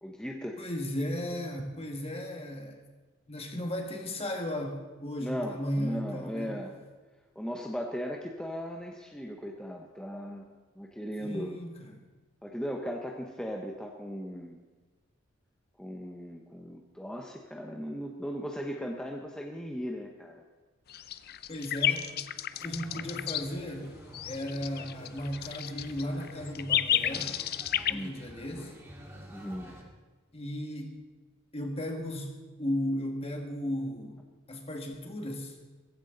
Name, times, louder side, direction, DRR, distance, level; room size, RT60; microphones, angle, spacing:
voice 1, 0.0-0.6 5.2-6.8 7.3-10.5 10.8-11.5 12.4-14.6 15.8-20.4 27.9-28.2 29.3-29.7, equal, 5° left, 1 dB, 0.9 m, -37 dB
voice 2, 0.6-2.8 3.3-6.6 11.2-11.9 21.5-22.1 22.6-23.9 24.2-27.4 27.9-28.8 30.3-31.0 31.5-32.3 32.6-34.2 34.5-35.6, equal, 30° left, 3 dB, 1.8 m, -35 dB
sound 1, 20.9-23.5 24.1-27.9, left 10 dB, 50° left, 0.5 m, -31 dB
sound 2, 22.5-29.8, equal, 15° right, 2.3 m, -49 dB
16.0 x 15.0 x 4.0 m, 1.3 s
head